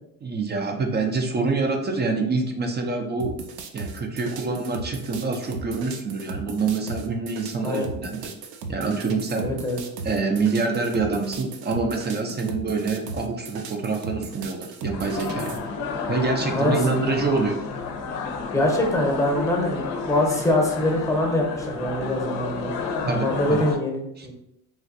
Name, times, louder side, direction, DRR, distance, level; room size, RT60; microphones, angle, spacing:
voice 1, 0.2-3.4 3.7-8.3 8.7-9.5 10.0-15.6 16.1-17.6 23.1-23.6 24.2-24.3, right 4 dB, 20° right, 3 dB, 0.4 m, -26 dB
sound 1, 3.2-15.6, right 3 dB, 85° right, 0.6 m, -37 dB
voice 2, 9.4-9.8 16.5-16.7 18.5-22.7 23.1-24.3, left 1 dB, 5° left, 0 dB, 0.8 m, -24 dB
sound 2, 14.9-23.8, left 4 dB, 50° left, 0.6 m, -31 dB
3.2 x 2.5 x 2.5 m, 0.81 s
hypercardioid pair, 70°, 48 cm